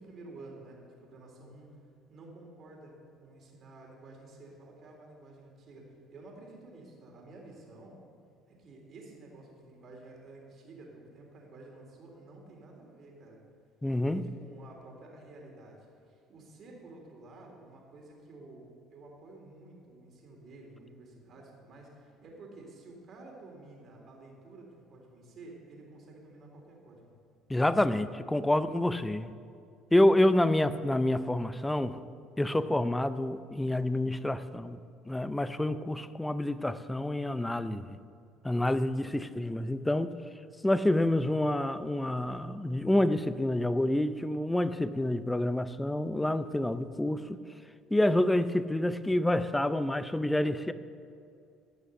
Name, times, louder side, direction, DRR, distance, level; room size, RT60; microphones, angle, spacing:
voice 1, 0.0-1.8 2.1-2.9 3.2-8.0 8.5-13.4 14.0-27.1, right 2 dB, 50° right, 0 dB, 3.5 m, -51 dB
voice 2, 13.8-14.2 27.5-29.3 29.9-32.0 32.4-34.8 35.1-38.0 38.4-40.2 40.6-47.4 47.9-50.7, left 1 dB, 10° left, 13 dB, 0.6 m, -28 dB
16.0 x 6.2 x 6.9 m, 2.4 s
supercardioid pair, 80°, 0 cm